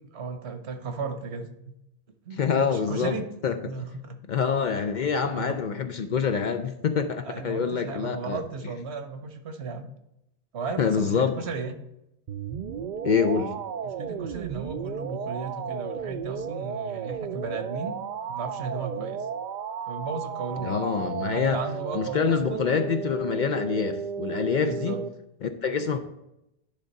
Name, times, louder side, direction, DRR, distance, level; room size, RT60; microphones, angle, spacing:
voice 1, 0.1-1.7 2.2-3.3 3.6-4.2 5.2-5.6 7.2-9.9 10.5-11.8 13.8-18.0 18.3-19.3 19.9-22.7 24.6-25.1, right 4 dB, 80° right, 8 dB, 1.1 m, -35 dB
voice 2, 2.4-3.2 3.4-3.6 4.3-8.4 10.8-11.3 13.0-13.6 20.6-21.6 21.9-24.9 25.4-26.0, left 6 dB, 55° left, 7 dB, 0.6 m, -26 dB
sound 1, 12.3-25.1, right 6 dB, 55° right, 0.5 m, -34 dB
10.5 x 3.6 x 5.2 m, 0.86 s
omnidirectional pair, 1.1 m